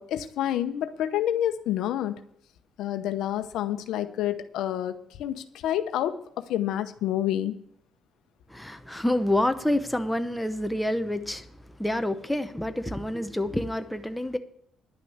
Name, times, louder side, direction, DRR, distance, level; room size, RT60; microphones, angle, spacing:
voice 1, 0.0-2.2 2.8-6.1 6.5-7.6, left 11 dB, 85° left, 0.8 m, -28 dB
voice 2, 8.5-11.5 11.8-14.4, left 1 dB, 5° left, 0.9 m, -27 dB
11.0 x 5.9 x 8.0 m
cardioid pair, 90°, 0 cm